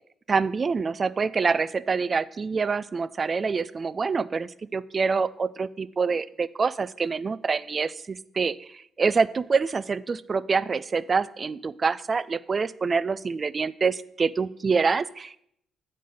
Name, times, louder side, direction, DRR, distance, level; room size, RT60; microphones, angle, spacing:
voice 1, 0.3-8.6 9.0-15.4, right 5 dB, 40° right, 17 dB, 0.4 m, -26 dB
7.7 x 5.3 x 6.5 m, 0.72 s
supercardioid pair, 65°, 0 cm